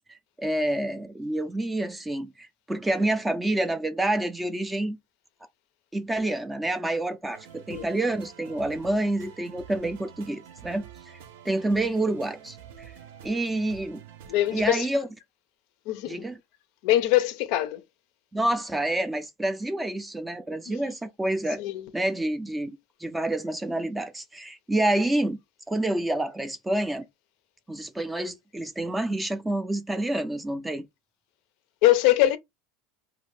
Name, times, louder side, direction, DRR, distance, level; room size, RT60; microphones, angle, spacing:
voice 1, 0.4-5.0 5.9-11.2 11.4-12.6 13.2-14.0 14.5-15.1 16.1-16.4 18.3-21.6 21.9-25.4 25.7-27.1 27.7-30.9, right 1 dB, 5° right, 0.4 m, -28 dB
sound 1, 7.3-14.7, right 9 dB, 85° right, 0.6 m, -47 dB
voice 2, 14.3-14.9 15.9-16.3 16.8-17.8 20.7-20.8 21.6-21.9 31.8-32.4, left 14 dB, 60° left, 0.4 m, -23 dB
2.6 x 2.5 x 3.2 m
supercardioid pair, 150°, 0 cm